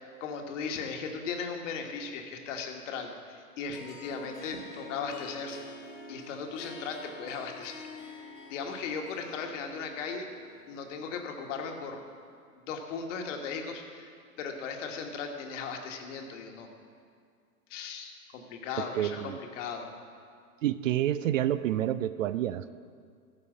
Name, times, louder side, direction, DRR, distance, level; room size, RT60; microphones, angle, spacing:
voice 1, 0.2-5.6 6.1-10.3 10.7-12.0 12.5-14.1 14.4-16.7 17.7-19.9, left 5 dB, 55° left, 3 dB, 1.5 m, -37 dB
Harp, 3.7-12.2, left 2 dB, 85° left, 2.1 m, -47 dB
voice 2, 18.8-19.4 20.6-22.7, right 12 dB, 60° right, 15 dB, 0.5 m, -29 dB
13.5 x 5.4 x 7.2 m, 2.1 s
figure-of-eight pair, 105°, 45 cm